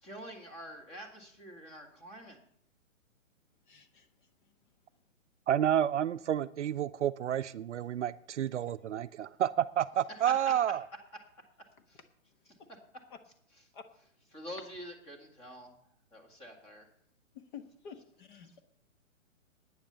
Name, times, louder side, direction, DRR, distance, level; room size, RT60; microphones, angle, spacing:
voice 1, 0.0-2.4 10.5-10.6 11.9-12.0 14.3-15.7 16.1-16.9, equal, 15° left, 2 dB, 1.9 m, -46 dB
voice 2, 3.6-4.5 12.6-12.7 13.1-13.2 13.7-13.8 17.3-18.6, left 7 dB, 35° left, 7 dB, 1.3 m, -50 dB
voice 3, 5.5-10.8, right 10 dB, 60° right, 13 dB, 0.5 m, -30 dB
10.0 x 9.5 x 6.7 m, 0.67 s
hypercardioid pair, 155°, 40 cm